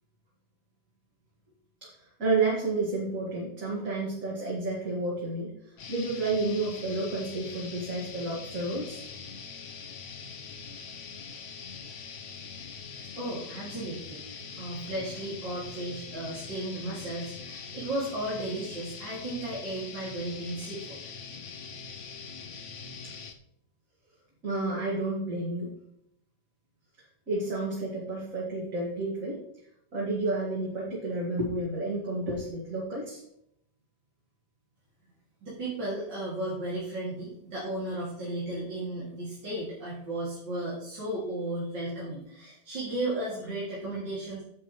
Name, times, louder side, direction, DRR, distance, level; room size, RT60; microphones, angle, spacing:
voice 1, 2.2-9.0 24.4-25.7 27.3-29.4 29.9-33.2, right 2 dB, 50° right, -5 dB, 2.4 m, -30 dB
sound 1, 5.8-23.3, left 5 dB, 50° left, 1.0 m, -43 dB
voice 2, 13.2-21.0 35.4-44.4, right 1 dB, 85° right, -8 dB, 3.3 m, -35 dB
10.5 x 7.4 x 3.2 m, 0.75 s
omnidirectional pair, 1.9 m